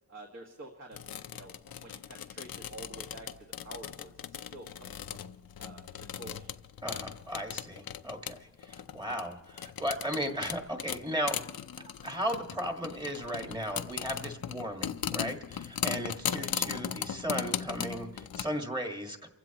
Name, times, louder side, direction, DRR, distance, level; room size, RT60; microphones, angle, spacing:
voice 1, 0.1-1.0 1.3-5.2 5.6-5.8 6.1-6.6 16.3-16.5, right 2 dB, 45° right, 1 dB, 1.7 m, -49 dB
sound 1, 0.9-18.5, left 9 dB, 75° left, 0.6 m, -38 dB
voice 2, 6.8-11.4 11.8-19.3, equal, 10° right, 3 dB, 1.7 m, -36 dB
29.5 x 15.5 x 3.0 m, 1.1 s
wide cardioid pair, 165°, 36 cm